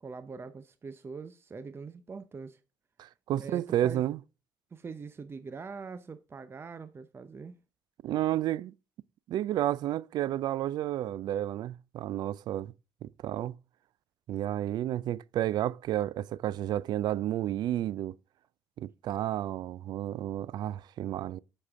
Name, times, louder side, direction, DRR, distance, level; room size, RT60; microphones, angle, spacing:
voice 1, 0.0-2.6 3.4-4.0 4.7-7.6, right 5 dB, 35° right, 0.6 m, -43 dB
voice 2, 3.0-4.2 8.0-8.7 9.3-12.7 13.0-13.6 14.3-18.2 18.8-21.4, right 12 dB, 70° right, 0.4 m, -31 dB
7.5 x 6.6 x 3.6 m
cardioid pair, 75°, 7 cm